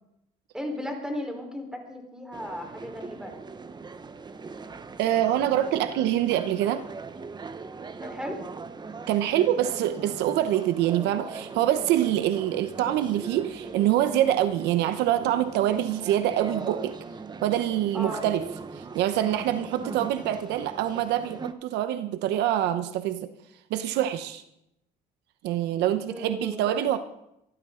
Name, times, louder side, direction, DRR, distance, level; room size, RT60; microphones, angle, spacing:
voice 1, 0.5-3.3 8.0-8.4 17.9-18.2 26.1-27.0, left 1 dB, 5° right, 3 dB, 4.3 m, -35 dB
sound 1, 2.3-21.5, right 4 dB, 25° right, 1.0 m, -40 dB
voice 2, 5.0-6.8 9.1-17.0 17.4-18.5 18.7-23.3 23.7-24.4 25.4-27.0, right 12 dB, 85° right, 10 dB, 1.0 m, -25 dB
24.0 x 13.5 x 3.9 m, 0.81 s
cardioid pair, 110°, 17 cm